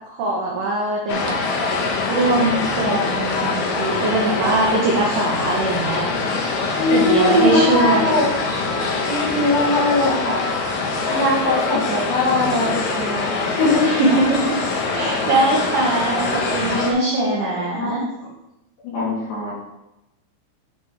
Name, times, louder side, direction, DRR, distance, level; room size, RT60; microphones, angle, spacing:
voice 1, 0.2-1.3 2.1-6.1 6.9-8.1 13.8-14.6 14.9-18.0, right 2 dB, 80° right, -3 dB, 1.9 m, -21 dB
sound 1, 1.1-16.9, left 3 dB, 85° left, 2.0 m, -24 dB
voice 2, 6.8-8.5 9.1-10.4 11.1-13.3 13.6-13.8 16.9-17.9 18.8-19.5, left 2 dB, 65° left, -7 dB, 4.3 m, -21 dB
9.5 x 4.7 x 3.2 m, 0.92 s
omnidirectional pair, 5.3 m